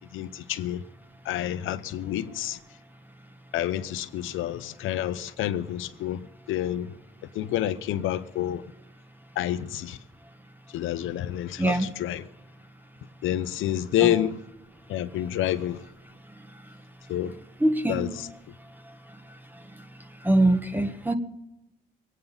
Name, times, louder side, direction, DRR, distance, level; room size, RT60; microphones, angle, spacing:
voice 1, 0.1-0.8 1.2-2.6 3.5-6.9 7.3-8.6 9.4-10.0 10.7-12.3 13.2-14.4 14.9-15.8 17.1-17.3 17.9-18.3, left 12 dB, 85° left, 0.9 m, -28 dB
voice 2, 17.6-18.0 20.2-21.1, right 1 dB, 10° right, 1.6 m, -22 dB
22.5 x 9.4 x 5.5 m
cardioid pair, 90°, 20 cm